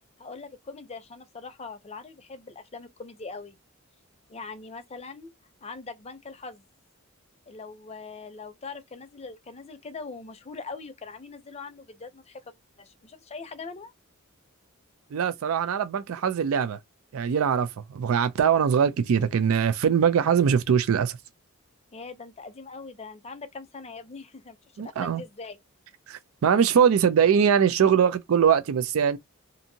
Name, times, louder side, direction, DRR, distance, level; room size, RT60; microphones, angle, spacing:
voice 1, 0.2-3.6 4.3-5.3 5.6-6.6 7.5-12.4 12.8-13.9 21.9-25.6, left 4 dB, 30° left, 0.6 m, -41 dB
voice 2, 15.1-16.8 17.1-21.2 24.8-25.2 26.1-29.2, right 7 dB, 75° right, 0.4 m, -22 dB
2.6 x 2.6 x 2.7 m
head